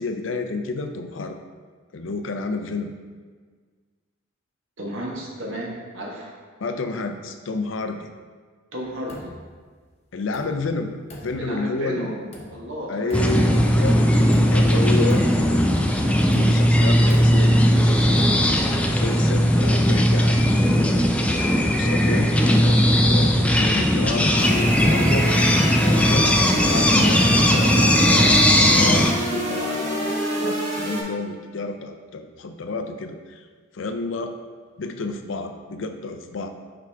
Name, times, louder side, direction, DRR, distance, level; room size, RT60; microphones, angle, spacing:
voice 1, 0.0-1.4 1.9-2.9 6.6-8.1 10.1-10.9 11.2-12.2 12.9-14.1 14.5-15.3 16.3-18.1 18.8-20.5 21.7-25.3 25.8-27.7 28.1-33.4 33.7-34.3 34.8-36.5, left 3 dB, 70° left, 6 dB, 0.5 m, -30 dB
voice 2, 4.8-6.3 8.7-9.3 11.4-13.4 14.7-15.1 23.0-23.3 26.0-26.3, equal, 75° right, -2 dB, 1.3 m, -33 dB
sound 1, 8.9-9.6 9.9-10.0 10.3-11.8 12.3-12.8 13.1-13.9 14.3-17.2, left 1 dB, 35° left, 0.8 m, -42 dB
sound 2, 13.1-29.1, equal, 5° left, 0.3 m, -18 dB
sound 3, 24.4-31.0, right 1 dB, 35° right, 1.4 m, -27 dB
5.8 x 4.9 x 3.4 m, 1.5 s
head